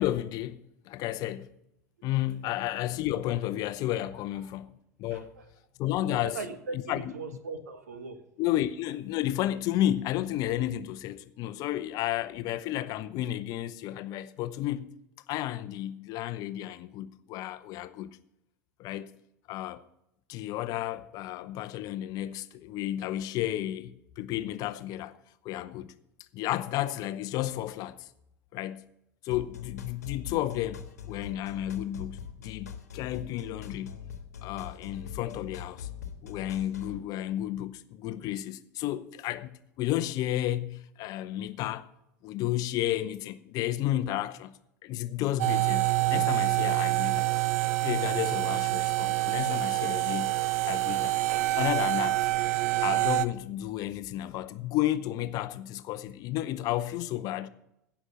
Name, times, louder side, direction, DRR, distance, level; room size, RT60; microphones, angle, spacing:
voice 1, 0.0-1.5 2.0-4.7 5.0-5.3 5.8-6.4 6.7-7.1 8.4-14.9 15.3-18.1 18.8-19.1 19.5-19.8 20.3-25.2 25.4-25.9 26.3-28.1 28.5-28.8 29.2-34.0 34.4-35.9 36.2-41.9 42.2-47.3 47.8-51.2 51.5-52.3 52.8-57.5, left 13 dB, 45° left, 0.7 m, -32 dB
voice 2, 5.1-5.4 6.1-8.2, right 3 dB, 75° right, 1.5 m, -39 dB
sound 1, 29.3-37.0, left 8 dB, 75° left, 1.3 m, -42 dB
sound 2, 45.4-53.3, right 17 dB, 55° right, 0.6 m, -26 dB
16.0 x 6.1 x 6.6 m
figure-of-eight pair, 75°, 9 cm